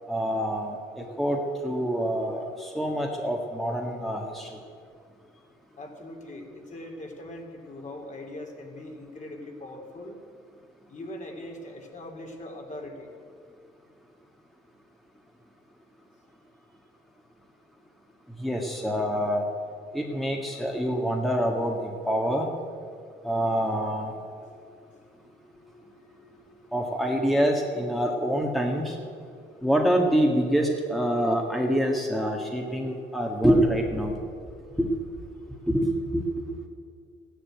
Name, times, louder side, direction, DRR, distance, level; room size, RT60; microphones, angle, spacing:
voice 1, 0.1-4.6 18.4-19.4 19.9-22.5 23.2-24.1 26.7-29.0 29.6-34.2 34.8-34.9 35.7-36.2, equal, ahead, 1 dB, 1.8 m, -26 dB
voice 2, 5.8-10.2 10.9-13.1 24.4-26.9 29.1-29.7 32.3-33.4 34.1-35.9 36.2-36.7, left 1 dB, 35° left, 2 dB, 3.1 m, -43 dB
14.5 x 10.5 x 9.2 m, 2.3 s
cardioid pair, 90°, 20 cm